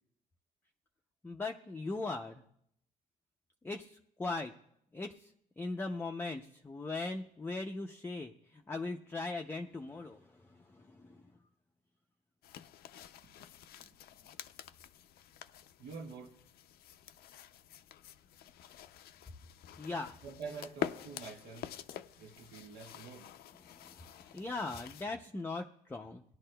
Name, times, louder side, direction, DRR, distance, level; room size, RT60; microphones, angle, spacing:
voice 1, 1.2-2.4 3.6-4.5 4.9-5.3 5.6-11.2 19.8-20.2 23.7-26.2, left 3 dB, 10° left, 0.5 m, -40 dB
sound 1, 12.4-25.1, left 11 dB, 65° left, 0.5 m, -47 dB
voice 2, 13.8-14.3 15.8-16.4 20.2-21.7 22.2-23.3, right 4 dB, 75° right, 1.3 m, -47 dB
18.0 x 11.0 x 2.2 m
cardioid pair, 110°, 17 cm